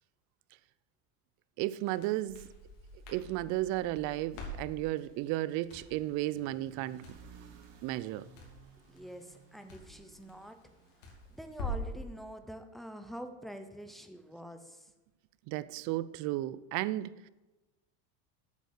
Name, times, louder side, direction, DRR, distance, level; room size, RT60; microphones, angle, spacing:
voice 1, 1.6-2.5 3.1-7.2 7.8-8.3 15.5-17.3, right 16 dB, 50° right, 0.5 m, -34 dB
Crackle, 1.8-12.0, equal, 85° left, 3.0 m, -46 dB
sound 1, 4.3-12.3, right 5 dB, 70° right, 1.7 m, -59 dB
voice 2, 8.9-10.6 11.0-14.9, equal, ahead, 0.6 m, -46 dB
8.3 x 6.7 x 6.5 m
cardioid pair, 150°, 37 cm